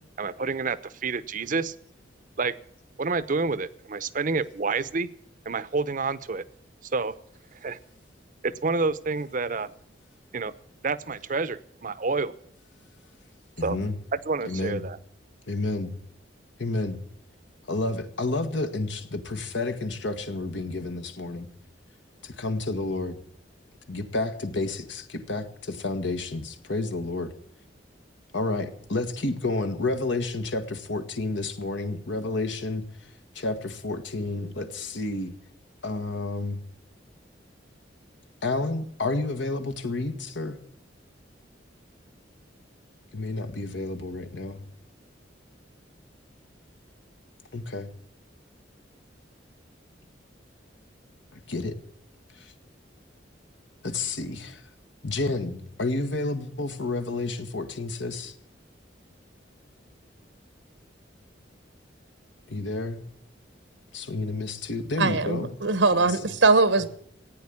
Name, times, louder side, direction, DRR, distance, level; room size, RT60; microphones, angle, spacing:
voice 1, 0.2-1.7 2.4-2.5 3.0-5.1 5.5-6.4 6.9-7.1 7.6-7.8 8.4-9.7 10.3-10.5 10.8-12.3 13.6-13.8 14.1-15.0, right 4 dB, 45° right, 0.7 m, -28 dB
voice 2, 13.6-14.0 14.4-14.8 15.5-15.9 16.6-17.0 17.7-21.5 22.2-23.2 23.9-27.3 28.3-33.1 33.3-35.3 35.8-36.6 38.4-40.6 43.1-44.6 47.5-47.9 51.3-51.7 52.4-52.5 53.8-54.6 55.0-58.3 62.5-63.0 63.9-65.5 65.9-66.2, left 2 dB, 80° left, 1.6 m, -30 dB
voice 3, 65.0-66.9, right 3 dB, 90° right, 1.2 m, -21 dB
15.0 x 9.3 x 8.4 m
head